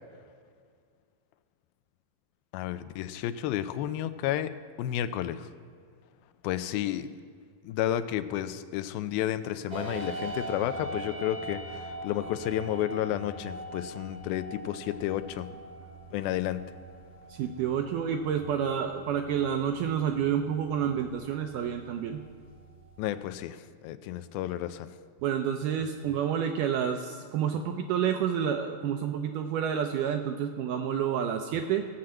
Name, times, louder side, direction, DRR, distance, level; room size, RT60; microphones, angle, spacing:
voice 1, 2.5-4.5 4.8-5.5 6.4-7.2 7.6-15.5 16.1-16.6 23.0-24.9, left 12 dB, 85° left, 11 dB, 2.4 m, -31 dB
sound 1, 9.7-23.3, right 2 dB, 40° right, 0.8 m, -43 dB
voice 2, 17.3-22.2 25.2-31.8, right 8 dB, 80° right, 5 dB, 1.9 m, -29 dB
16.0 x 5.8 x 7.6 m, 2.1 s
omnidirectional pair, 4.2 m